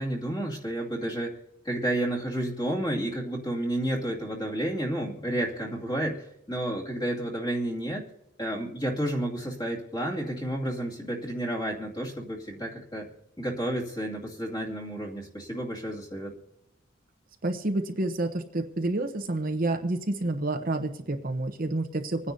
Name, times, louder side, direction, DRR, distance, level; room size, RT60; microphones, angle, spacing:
voice 1, 0.0-1.4 1.6-8.1 8.4-13.1 13.4-16.4, right 1 dB, 20° left, -2 dB, 2.3 m, -31 dB
voice 2, 17.4-22.2, right 2 dB, 45° right, 5 dB, 0.8 m, -29 dB
26.5 x 9.8 x 2.7 m, 0.88 s
head